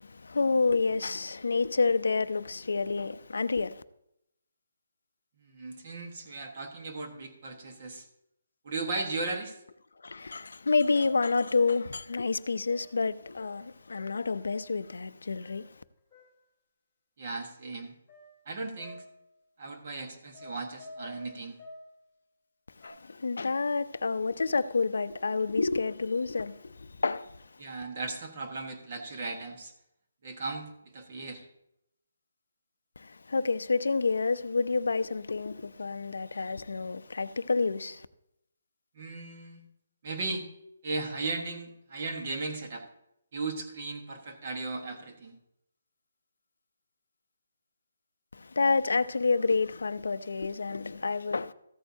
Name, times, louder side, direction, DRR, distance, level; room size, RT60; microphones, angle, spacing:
voice 1, 0.0-3.8 10.0-15.8 22.8-27.7 33.0-38.1 48.3-51.5, left 4 dB, 80° left, 0.5 m, -29 dB
voice 2, 5.4-8.1 8.6-9.6 17.2-17.9 18.5-19.0 19.6-21.6 27.6-29.7 30.2-31.5 38.9-39.6 40.0-40.5 40.8-42.8 43.3-45.3, right 3 dB, 30° right, 1.3 m, -36 dB
sound 1, 10.6-10.7 11.0-13.1 13.4-13.7 14.0-14.3 15.4-16.5 18.1-19.3 20.3-22.0 22.8-22.9, left 1 dB, 5° left, 3.1 m, -50 dB
14.5 x 8.8 x 2.7 m
hypercardioid pair, 175°, 0 cm